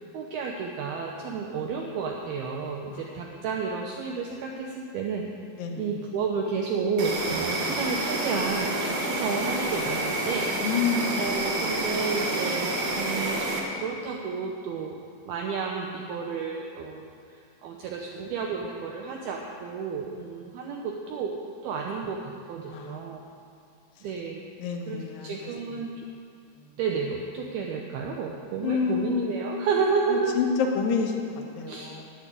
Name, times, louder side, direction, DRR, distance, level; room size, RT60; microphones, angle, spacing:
voice 1, 0.0-5.2 5.8-8.7 9.1-10.5 11.2-13.5 13.8-15.0 15.3-21.4 21.6-23.2 24.0-24.4 24.9-25.9 26.8-30.4 31.7-32.0, right 5 dB, 90° right, 0 dB, 2.2 m, -31 dB
Insect, 7.0-13.6, right 2 dB, 70° right, 1.5 m, -28 dB
voice 2, 10.6-11.3 22.7-23.1 24.6-25.4 28.6-29.7 30.1-32.0, left 6 dB, 70° left, 2 dB, 2.3 m, -28 dB
9.7 x 8.6 x 9.7 m, 2.3 s
omnidirectional pair, 5.6 m